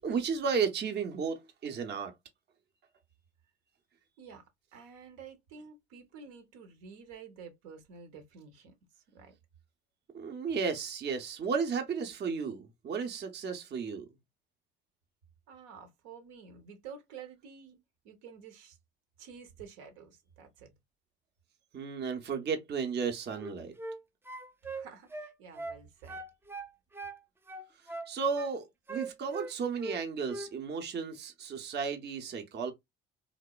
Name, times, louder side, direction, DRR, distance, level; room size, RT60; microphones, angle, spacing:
voice 1, 0.0-2.1 10.1-14.1 21.7-23.7 27.8-32.7, right 5 dB, 35° right, 0.7 m, -34 dB
voice 2, 4.7-8.7 9.1-9.3 15.5-17.8 18.0-18.8 19.2-20.7 24.7-26.2, right 6 dB, 70° right, 0.8 m, -50 dB
sound 1, 23.3-24.0 24.2-25.8 26.1-27.2 27.5-28.5 28.9-30.0 30.3-30.5, right 2 dB, 10° right, 0.4 m, -41 dB
3.0 x 2.1 x 2.2 m
hypercardioid pair, 60°, 31 cm